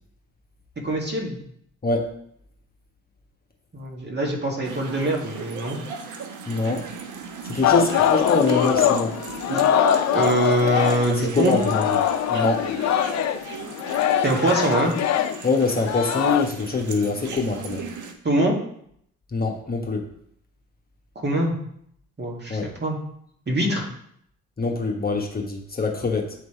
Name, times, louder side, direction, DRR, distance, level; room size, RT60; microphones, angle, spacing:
voice 1, 0.8-1.4 3.7-5.8 9.5-9.6 10.1-11.6 14.2-14.9 18.2-18.5 21.2-21.6 22.2-23.0 23.5-23.8, right 1 dB, 35° right, 0 dB, 1.9 m, -23 dB
sound 1, 4.6-18.1, right 6 dB, 70° right, 1.0 m, -37 dB
voice 2, 6.5-6.8 7.4-9.1 11.3-12.0 12.3-12.7 15.4-17.9 19.3-20.1 22.5-22.7 24.6-26.3, left 3 dB, 30° left, 1 dB, 1.3 m, -24 dB
Singing, 7.6-11.2 11.5-16.4, left 9 dB, 55° left, 0.6 m, -22 dB
8.1 x 3.2 x 4.3 m, 0.68 s
supercardioid pair, 60°, 31 cm